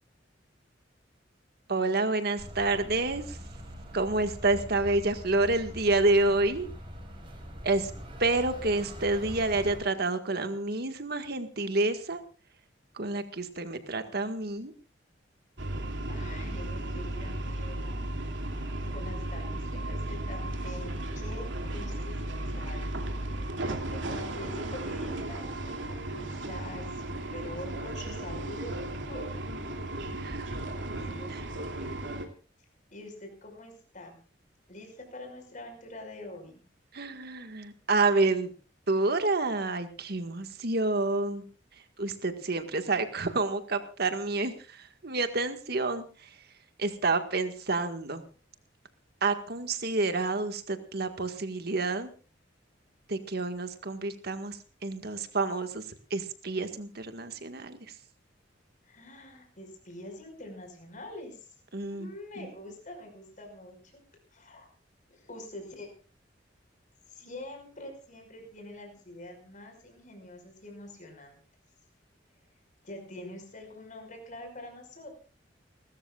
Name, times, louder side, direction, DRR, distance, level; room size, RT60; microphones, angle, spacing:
voice 1, 1.7-3.4 3.9-6.7 7.6-7.9 8.2-12.2 13.0-14.7 30.1-30.6 31.3-31.5 36.9-38.5 38.9-41.4 42.0-46.3 46.8-48.2 49.2-52.1 53.1-57.8 61.7-62.1 62.4-62.5, right 2 dB, 60° right, 8 dB, 1.8 m, -29 dB
sound 1, 2.4-9.8, equal, 30° right, 5.8 m, -43 dB
sound 2, 15.6-32.3, right 1 dB, 85° right, 2.7 m, -35 dB
voice 2, 16.1-18.1 18.8-22.2 22.5-23.0 23.9-29.3 30.5-32.0 32.9-34.2 34.7-36.6 58.8-61.6 61.9-64.0 64.3-64.7 65.1-65.9 67.1-71.4 72.8-75.1, left 1 dB, 45° left, 4 dB, 5.5 m, -45 dB
30.0 x 13.5 x 2.5 m, 0.36 s
head